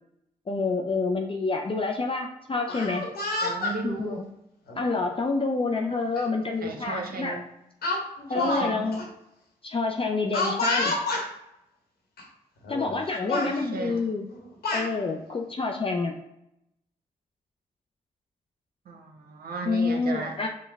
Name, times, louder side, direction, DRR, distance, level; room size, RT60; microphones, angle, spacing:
voice 1, 0.5-3.1 3.8-4.2 4.8-7.4 8.3-9.0 9.6-10.9 12.7-14.2 14.7-16.1 19.7-20.5, left 3 dB, 35° left, 3 dB, 0.5 m, -28 dB
Speech, 2.6-3.8 4.7-4.9 6.2-6.3 6.6-6.9 7.8-8.7 8.9-9.0 10.3-11.3 12.2-12.3 12.6-13.0 13.3-13.5 14.3-14.9, left 2 dB, 75° left, 1.1 m, -28 dB
voice 2, 3.4-4.3 6.6-7.5 8.3-8.9 13.1-14.1 18.9-20.4, right 4 dB, 65° right, 3 dB, 0.7 m, -36 dB
5.2 x 2.2 x 3.4 m, 0.84 s
supercardioid pair, 40°, 16 cm